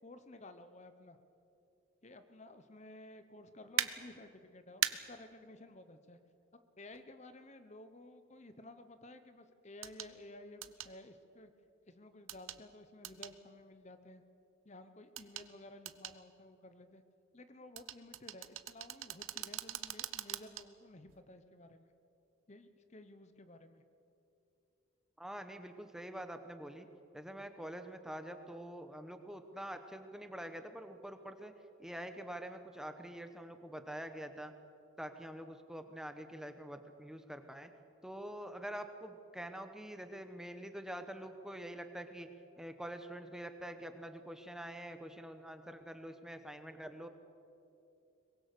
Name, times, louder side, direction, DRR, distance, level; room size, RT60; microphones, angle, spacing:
voice 1, 0.0-1.2 2.0-6.2 6.5-11.5 11.9-14.2 14.6-17.0 17.3-21.9 22.5-23.8, left 2 dB, 35° left, 10 dB, 0.9 m, -54 dB
sound 1, 3.8-3.9 4.8-4.9 6.9-7.0 9.8-10.1 10.6-10.9 12.3-12.6 13.0-13.3 15.2-15.5 15.9-16.2 17.8-20.6 21.1-21.2, right 12 dB, 75° right, 0.9 m, -39 dB
voice 2, 25.2-26.9 27.1-31.5 31.8-34.5 35.0-37.7 38.0-47.1, right 1 dB, 5° right, 7 dB, 1.0 m, -46 dB
23.0 x 22.0 x 6.8 m, 2.8 s
head